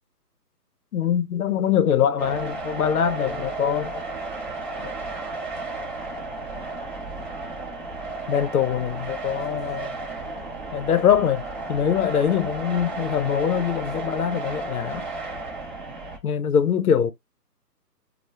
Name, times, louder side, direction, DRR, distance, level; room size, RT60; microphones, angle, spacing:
voice 1, 0.9-3.9 8.3-10.0 10.7-11.4 11.7-15.1 16.2-17.1, left 8 dB, 65° left, 0.5 m, -23 dB
sound 1, 2.2-16.2, right 3 dB, 30° right, 0.7 m, -33 dB
2.3 x 2.0 x 2.8 m
hypercardioid pair, 155°, 49 cm